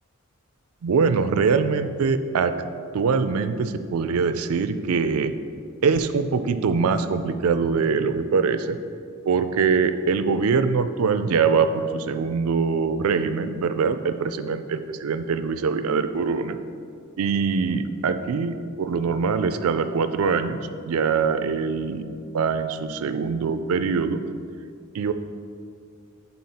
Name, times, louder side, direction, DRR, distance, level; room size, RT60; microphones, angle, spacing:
voice 1, 0.8-2.5 2.9-5.3 5.8-8.8 9.3-16.6 17.2-20.6 20.9-22.1 22.3-24.2 24.9-25.1, right 5 dB, 85° right, 10 dB, 0.4 m, -23 dB
9.3 x 4.1 x 4.2 m, 2.3 s
head